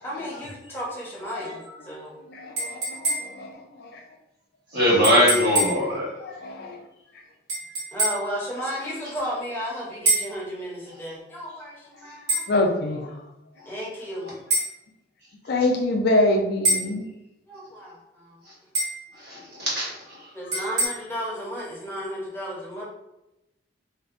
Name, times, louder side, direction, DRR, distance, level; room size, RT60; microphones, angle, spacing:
voice 1, 0.0-2.2 7.9-12.5 13.7-14.4 17.5-18.4 20.3-22.8, equal, 10° left, -6 dB, 0.6 m, -34 dB
voice 2, 1.3-1.9 2.3-4.0 4.8-4.9 5.5-6.8 8.8-8.9 9.2-9.3 12.5-13.2 15.4-17.1 20.4-20.6, left 2 dB, 50° left, 2 dB, 0.4 m, -27 dB
sound 1, 2.6-3.5 5.0-5.9 7.5-8.3 10.1-10.4 12.3-12.5 14.5-14.7 16.6-17.0 18.7-19.1 20.5-20.9, right 2 dB, 90° right, 1.1 m, -25 dB
voice 3, 4.7-6.0 19.2-20.2, equal, 50° right, -7 dB, 1.2 m, -21 dB
2.5 x 2.1 x 2.4 m, 0.92 s
head